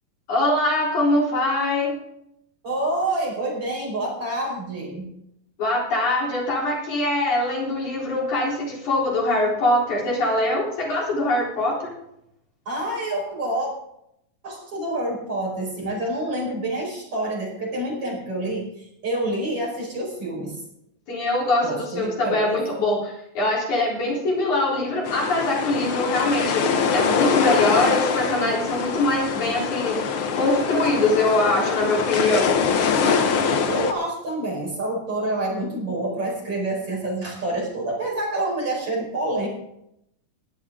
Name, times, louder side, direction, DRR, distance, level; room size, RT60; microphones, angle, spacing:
voice 1, 0.3-2.0 5.6-11.9 21.1-30.0 30.3-32.6, left 2 dB, 55° left, -3 dB, 5.2 m, -23 dB
voice 2, 2.6-5.1 12.7-13.7 14.4-20.6 21.6-22.6 33.7-39.5, right 1 dB, 40° right, -1 dB, 5.9 m, -27 dB
sound 1, 25.0-33.9, left 6 dB, 70° left, 1.2 m, -23 dB
18.5 x 12.0 x 3.8 m, 0.77 s
omnidirectional pair, 4.1 m